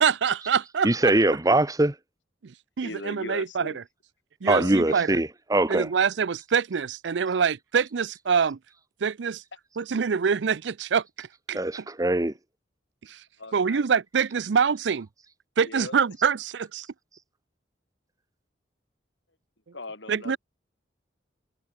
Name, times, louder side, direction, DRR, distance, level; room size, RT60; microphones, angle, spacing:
voice 1, 0.0-1.1 2.4-3.7 4.4-5.2 5.7-8.6 9.0-9.4 9.8-11.6 13.1-13.2 13.5-15.1 15.6-16.9 20.1-20.4, right 6 dB, 80° right, 0.5 m, -25 dB
voice 2, 0.8-1.9 4.5-5.9 11.5-12.3, right 2 dB, 20° right, 1.0 m, -22 dB
voice 3, 2.8-3.8 4.4-4.9 13.4-13.8 15.6-15.9 19.7-20.4, left 2 dB, 90° left, 4.5 m, -39 dB
head